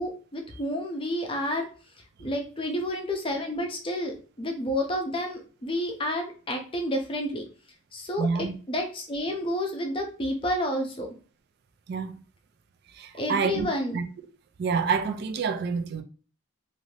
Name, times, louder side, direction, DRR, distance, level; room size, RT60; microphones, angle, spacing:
voice 1, 0.0-1.7 2.2-7.5 7.9-11.1 13.1-14.0, left 1 dB, 25° left, 0.5 m, -30 dB
voice 2, 8.2-8.5 11.9-12.2 12.9-14.0 14.6-16.0, right 5 dB, 50° right, 0.3 m, -28 dB
2.6 x 2.5 x 3.2 m
head